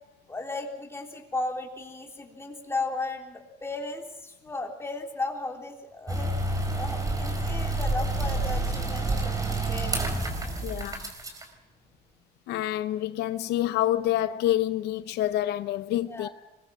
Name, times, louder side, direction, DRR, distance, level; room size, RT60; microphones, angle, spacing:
voice 1, 0.3-6.3 6.6-10.2 16.0-16.3, left 2 dB, 15° left, 3.7 m, -35 dB
sound 1, 6.1-11.4, right 2 dB, 20° right, 4.6 m, -29 dB
voice 2, 10.6-11.1 12.5-16.3, left 13 dB, 80° left, 0.7 m, -27 dB
24.0 x 21.5 x 6.0 m
cardioid pair, 110°, 17 cm